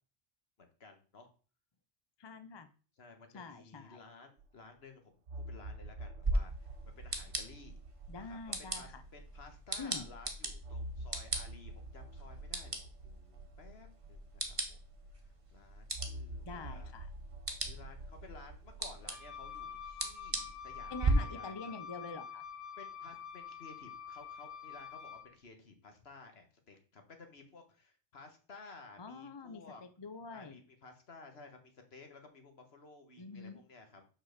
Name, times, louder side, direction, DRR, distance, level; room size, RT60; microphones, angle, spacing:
voice 1, 0.6-1.3 3.0-6.7 7.0-7.8 8.2-12.8 13.0-14.8 15.5-16.9 17.7-21.8 22.8-29.8 30.3-34.0, left 3 dB, 60° left, 5 dB, 1.6 m, -55 dB
voice 2, 2.2-2.7 3.3-4.0 8.1-9.0 9.8-10.1 16.4-17.1 20.9-22.5 29.0-30.6 33.2-33.6, left 4 dB, 30° left, 9 dB, 0.5 m, -46 dB
sound 1, 4.4-4.5 5.3-9.8 10.6-15.3 15.9-19.0, right 1 dB, 70° right, 1.1 m, -48 dB
sound 2, 6.2-21.1, right 2 dB, 30° right, 1.2 m, -40 dB
Wind instrument woodwind instrument, 19.0-25.3, left 7 dB, 80° left, 1.2 m, -47 dB
5.8 x 4.6 x 6.5 m, 0.39 s
omnidirectional pair, 1.2 m